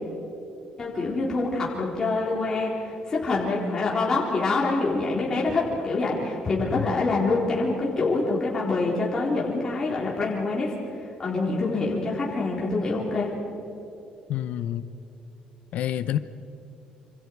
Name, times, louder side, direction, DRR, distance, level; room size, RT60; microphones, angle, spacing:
voice 1, 0.8-10.7 11.2-13.3, left 3 dB, 25° left, -5 dB, 4.0 m, -25 dB
voice 2, 14.3-14.9 15.7-16.2, left 11 dB, 65° left, 12 dB, 0.7 m, -28 dB
27.5 x 26.0 x 4.7 m, 2.9 s
cardioid pair, 160°, 3 cm